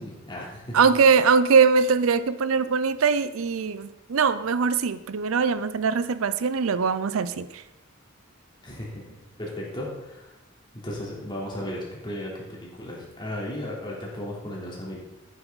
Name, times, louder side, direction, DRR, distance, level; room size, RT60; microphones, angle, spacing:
voice 1, 0.0-0.8 8.6-10.3 10.7-15.0, left 1 dB, 25° left, -4 dB, 3.3 m, -35 dB
voice 2, 0.7-7.6, right 5 dB, 80° right, 14 dB, 0.5 m, -22 dB
11.5 x 9.1 x 4.1 m, 0.96 s
head